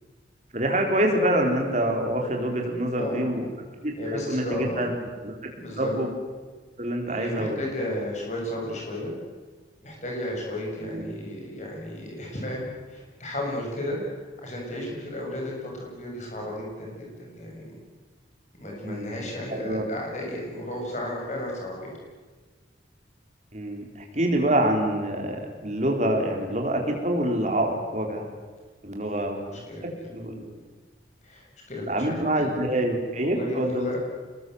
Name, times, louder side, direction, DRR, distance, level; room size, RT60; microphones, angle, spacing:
voice 1, 0.5-3.5 3.8-3.9 4.3-4.9 5.2-5.4 5.8-6.1 6.8-7.6 10.9-11.0 18.8-19.2 19.5-19.8 23.5-28.2 28.8-29.4 30.1-30.5 31.9-33.9, right 1 dB, 40° right, 2 dB, 4.2 m, -26 dB
voice 2, 2.9-3.3 4.0-4.9 5.5-5.9 7.1-9.1 9.8-17.8 18.6-22.0 29.0-29.2 29.5-29.8 31.2-32.6 33.2-34.0, left 1 dB, 40° left, -1 dB, 7.4 m, -34 dB
27.0 x 21.0 x 8.1 m, 1.4 s
head